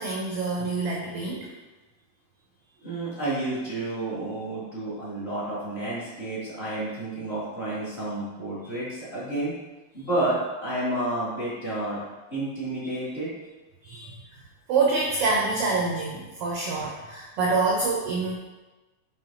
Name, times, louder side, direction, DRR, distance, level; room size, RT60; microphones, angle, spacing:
voice 1, 0.0-1.5 8.6-8.7 13.8-14.1 14.7-18.3, right 3 dB, 70° right, -2 dB, 1.4 m, -26 dB
voice 2, 2.8-9.5 9.9-12.0 12.3-13.3, right 1 dB, 25° left, -10 dB, 2.0 m, -30 dB
6.0 x 4.5 x 3.8 m, 1.2 s
omnidirectional pair, 3.3 m